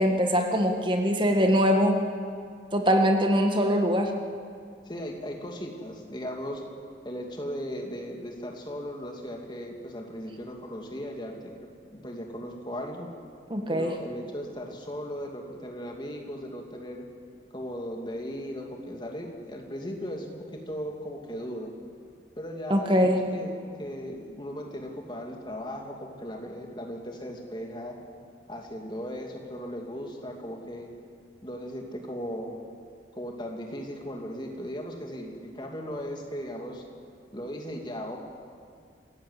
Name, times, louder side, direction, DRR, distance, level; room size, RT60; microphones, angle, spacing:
voice 1, 0.0-2.0 2.7-4.1 13.5-13.9 22.7-23.2, equal, 25° right, 4 dB, 1.6 m, -22 dB
voice 2, 4.9-6.6 7.0-11.5 11.9-13.1 13.7-17.0 17.5-21.7 22.4-28.0 28.5-30.9 31.4-32.5 33.1-36.8 37.3-38.2, equal, 25° left, 1 dB, 2.7 m, -37 dB
27.0 x 15.5 x 8.2 m, 2.2 s
head